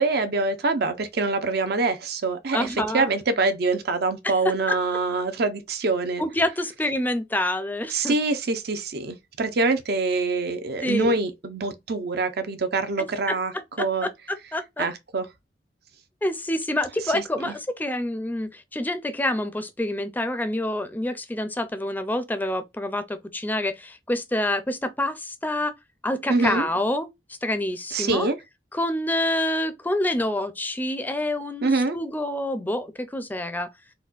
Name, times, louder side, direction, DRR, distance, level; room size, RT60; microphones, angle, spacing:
voice 1, 0.0-6.2 7.9-14.1 14.8-15.3 17.0-17.5 26.3-26.7 27.9-28.4 31.6-32.0, right 3 dB, 65° right, 0.6 m, -25 dB
voice 2, 2.5-3.1 4.7-4.8 6.2-8.2 10.8-11.2 13.8-14.1 14.5-14.9 16.2-25.7 26.0-27.1 27.4-28.3 28.7-33.7, left 1 dB, 10° left, 0.4 m, -27 dB
4.1 x 2.2 x 2.4 m
head